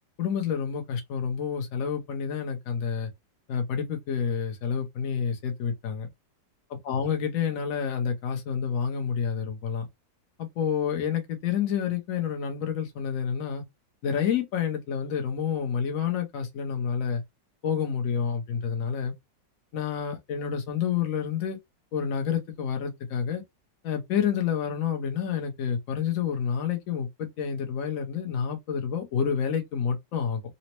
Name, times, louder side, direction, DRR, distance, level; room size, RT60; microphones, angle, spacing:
voice 1, 0.2-3.1 3.5-6.1 6.7-9.9 10.4-13.6 14.0-17.2 17.6-19.1 19.7-21.6 21.9-23.4 23.8-30.4, left 7 dB, 60° left, 1.0 m, -29 dB
4.0 x 2.1 x 2.9 m
omnidirectional pair, 1.9 m